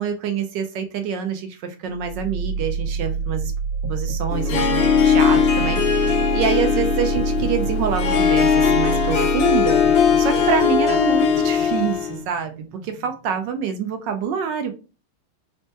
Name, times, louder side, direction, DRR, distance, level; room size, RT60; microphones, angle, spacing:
voice 1, 0.0-3.5 3.9-14.7, right 7 dB, 75° right, 7 dB, 1.1 m, -26 dB
sound 1, 1.9-13.8, right 5 dB, 50° right, 0.5 m, -28 dB
Harp, 4.3-12.2, left 7 dB, 70° left, 1.3 m, -19 dB
4.3 x 2.1 x 2.7 m, 0.32 s
omnidirectional pair, 2.2 m